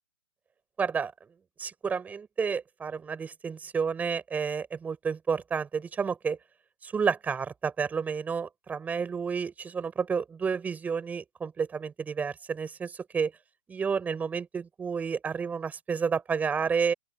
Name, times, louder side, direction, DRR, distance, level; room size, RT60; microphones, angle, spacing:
voice 1, 0.8-1.1 1.6-6.4 6.8-13.3 13.7-16.9, right 6 dB, 10° right, 7.5 m, -30 dB
open air
hypercardioid pair, 160°, 18 cm